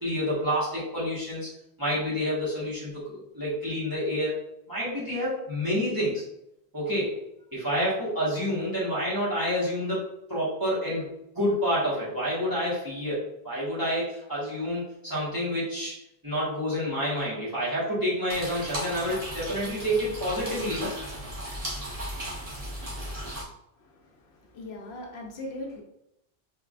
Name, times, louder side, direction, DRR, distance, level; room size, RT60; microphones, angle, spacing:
voice 1, 0.0-1.5 1.8-4.4 4.7-6.2 6.7-7.2 7.5-10.0 10.3-11.1 11.3-20.9, equal, 20° right, -9 dB, 1.3 m, -28 dB
sound 1, 18.3-23.4, equal, 35° right, 1.1 m, -36 dB
voice 2, 23.8-25.8, left 1 dB, 90° left, 1 dB, 1.0 m, -40 dB
3.7 x 3.5 x 2.4 m, 0.81 s
omnidirectional pair, 1.0 m